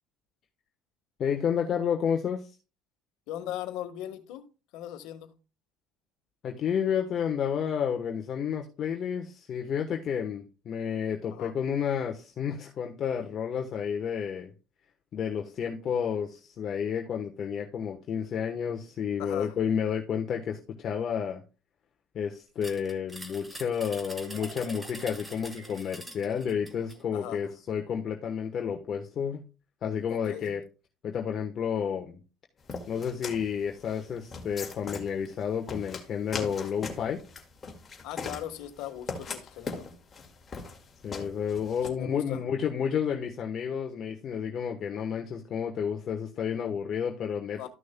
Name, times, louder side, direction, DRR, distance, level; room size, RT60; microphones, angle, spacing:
voice 1, 1.2-2.6 6.4-14.5 15.1-21.4 22.1-29.4 29.8-30.6 31.0-32.2 32.9-37.2 41.0-47.7, left 7 dB, 45° left, 1.1 m, -31 dB
voice 2, 3.3-4.5 4.7-5.3 11.3-11.5 19.2-19.5 23.8-24.0 27.1-27.4 30.1-30.5 38.0-39.9 41.9-42.4 47.5-47.7, left 12 dB, 75° left, 1.4 m, -39 dB
sound 1, 22.6-27.0, right 1 dB, 10° right, 1.5 m, -45 dB
sound 2, 24.0-27.5, right 4 dB, 60° right, 4.4 m, -50 dB
sound 3, 32.7-41.9, left 4 dB, 30° left, 2.0 m, -40 dB
13.5 x 6.3 x 2.2 m
supercardioid pair, 110°, 0 cm